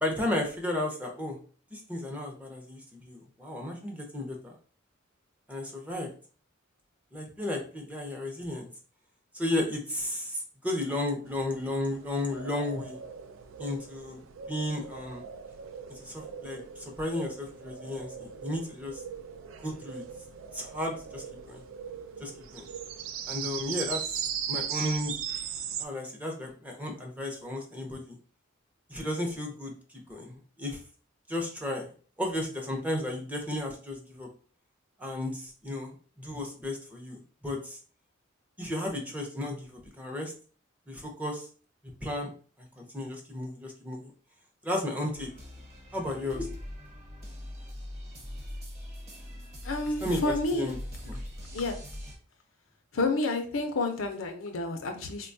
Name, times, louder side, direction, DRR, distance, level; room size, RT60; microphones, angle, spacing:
voice 1, 0.0-1.4 1.7-4.5 5.5-6.1 7.1-8.7 9.3-13.0 13.6-14.2 14.5-15.2 15.9-19.0 19.6-20.0 20.5-21.6 22.2-22.7 23.3-24.2 24.5-25.1 25.8-28.2 28.9-30.8 31.3-31.9 32.2-34.3 35.0-37.2 37.4-37.8 38.6-40.3 40.9-41.5 42.0-42.3 42.6-44.1 44.6-45.3 45.9-46.5 50.0-50.8 51.0-51.2, left 1 dB, 5° right, 1 dB, 0.6 m, -34 dB
sound 1, 11.3-25.9, right 8 dB, 70° right, 0.3 m, -39 dB
sound 2, 45.1-52.2, left 1 dB, 30° right, 1.0 m, -42 dB
voice 2, 49.6-50.7 51.5-51.8 52.9-55.3, left 2 dB, 75° left, 5 dB, 0.6 m, -30 dB
4.0 x 2.2 x 2.6 m, 0.40 s
head